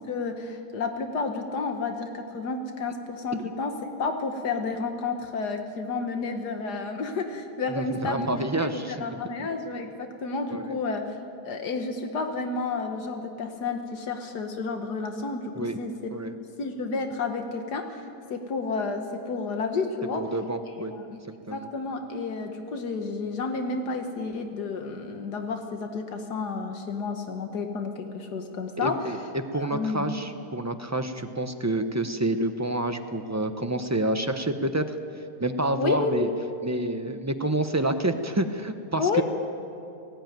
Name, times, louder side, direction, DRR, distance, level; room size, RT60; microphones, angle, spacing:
voice 1, 0.0-3.7 4.0-8.3 8.6-11.0 11.4-15.4 15.8-16.1 16.6-17.8 18.3-20.2 20.9-21.2 21.5-29.0 29.5-30.1 35.8-36.3 39.0-39.2, left 4 dB, 80° left, 5 dB, 1.9 m, -31 dB
voice 2, 7.7-9.5 10.5-10.7 15.5-15.8 16.1-16.3 20.2-20.9 21.5-21.7 28.8-35.0 35.4-36.3 36.6-39.2, right 1 dB, 25° right, 7 dB, 0.3 m, -28 dB
18.0 x 16.0 x 9.3 m, 2.5 s
omnidirectional pair, 1.7 m